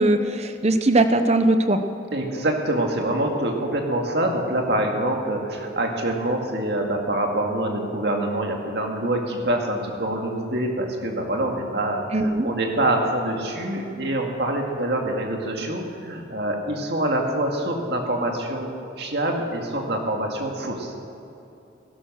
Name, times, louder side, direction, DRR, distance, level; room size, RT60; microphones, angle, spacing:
voice 1, 0.0-1.8 12.1-12.5, right 2 dB, 35° right, 9 dB, 0.8 m, -20 dB
voice 2, 2.1-12.0 12.4-20.9, right 1 dB, 55° right, 1 dB, 2.2 m, -25 dB
17.5 x 11.5 x 6.4 m, 2.8 s
head